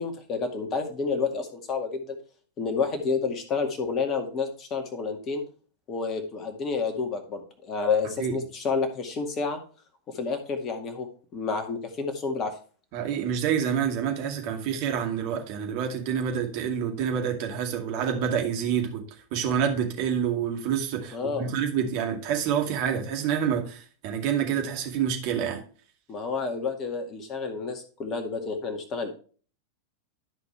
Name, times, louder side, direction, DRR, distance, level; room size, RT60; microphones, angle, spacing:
voice 1, 0.0-2.2 2.6-5.4 5.9-9.6 10.1-11.1 11.3-12.5 14.2-14.3 21.1-21.5 26.1-29.1, left 4 dB, 30° left, 6 dB, 2.0 m, -29 dB
voice 2, 12.9-19.0 19.3-25.6, right 8 dB, 45° right, 3 dB, 2.2 m, -27 dB
13.0 x 5.3 x 3.3 m, 0.40 s
figure-of-eight pair, 90°, 0 cm